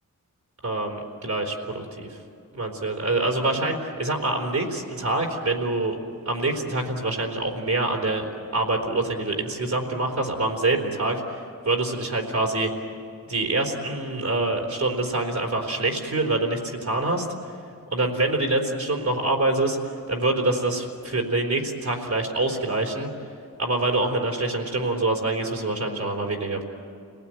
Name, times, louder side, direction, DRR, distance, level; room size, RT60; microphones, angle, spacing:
voice 1, 0.6-2.2 2.5-6.0 6.3-12.7 13.3-17.6 17.9-23.1 23.6-26.6, right 2 dB, 55° right, -1 dB, 4.1 m, -25 dB
29.0 x 19.0 x 9.2 m, 2.5 s
wide cardioid pair, 110°, 33 cm